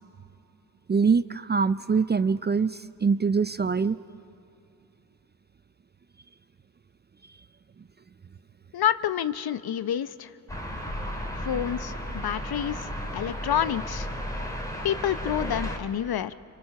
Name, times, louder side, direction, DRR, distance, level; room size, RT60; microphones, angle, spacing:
voice 1, 0.9-4.0, right 5 dB, 25° right, 15 dB, 0.5 m, -24 dB
voice 2, 8.7-10.3 11.4-14.1 14.8-16.3, left 10 dB, 55° left, 15 dB, 0.8 m, -28 dB
sound 1, 10.5-15.8, equal, 5° left, 3.6 m, -34 dB
26.0 x 24.0 x 5.9 m, 2.7 s
supercardioid pair, 50°, 45 cm